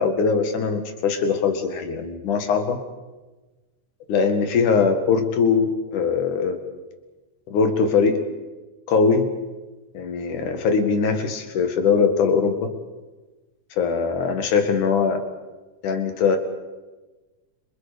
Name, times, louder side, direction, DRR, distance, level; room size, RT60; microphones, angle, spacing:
voice 1, 0.0-2.8 4.1-6.6 7.5-8.2 8.9-9.3 9.9-12.7 13.7-15.2 15.8-16.4, left 5 dB, 70° left, 6 dB, 3.4 m, -21 dB
30.0 x 27.0 x 5.2 m, 1.2 s
omnidirectional pair, 3.7 m